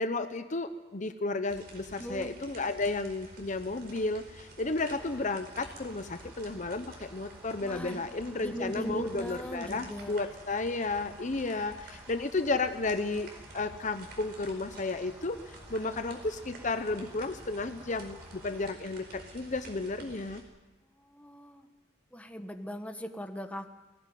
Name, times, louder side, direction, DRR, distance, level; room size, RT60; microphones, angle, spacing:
voice 1, 0.0-15.4 15.7-20.4, left 3 dB, 40° left, 9 dB, 0.9 m, -33 dB
sound 1, 1.5-20.4, right 2 dB, 60° right, 4.7 m, -50 dB
voice 2, 2.0-2.3 7.6-8.0 8.4-10.2 21.0-21.7 22.1-23.7, equal, 5° left, 7 dB, 1.2 m, -39 dB
Cricket, 4.8-18.7, equal, 10° right, 2.4 m, -55 dB
19.0 x 18.0 x 9.3 m, 1.2 s
head